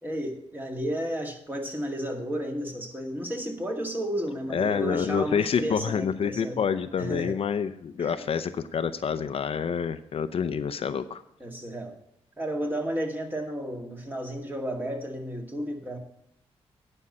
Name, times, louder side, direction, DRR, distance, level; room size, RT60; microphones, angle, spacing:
voice 1, 0.0-6.6 7.0-7.4 8.0-8.3 11.4-12.0 12.4-16.0, equal, 15° right, 3 dB, 2.0 m, -32 dB
voice 2, 4.5-11.2, left 7 dB, 60° left, 11 dB, 0.6 m, -28 dB
9.8 x 5.4 x 8.3 m, 0.79 s
cardioid pair, 80°, 11 cm